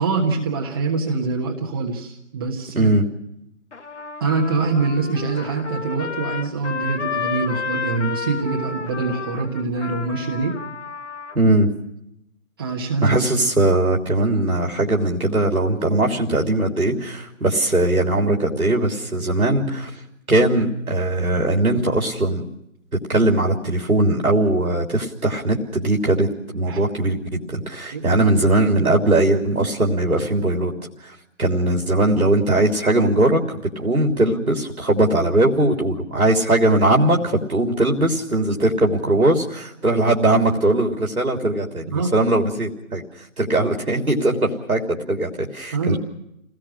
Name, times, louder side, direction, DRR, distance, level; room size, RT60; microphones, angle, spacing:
voice 1, 0.0-2.9 4.2-10.5 12.6-13.5 26.7-26.8 27.9-28.5 28.8-28.9 41.9-42.1 45.7-46.0, right 4 dB, 15° right, -1 dB, 1.3 m, -24 dB
voice 2, 2.7-3.0 11.3-11.7 13.0-20.0 20.3-22.4 23.1-30.7 31.0-46.0, right 1 dB, 85° right, 1 dB, 3.3 m, -20 dB
Trumpet, 3.7-11.4, left 5 dB, 55° left, 1.7 m, -31 dB
29.0 x 19.0 x 6.3 m, 0.84 s
figure-of-eight pair, 160°, 42 cm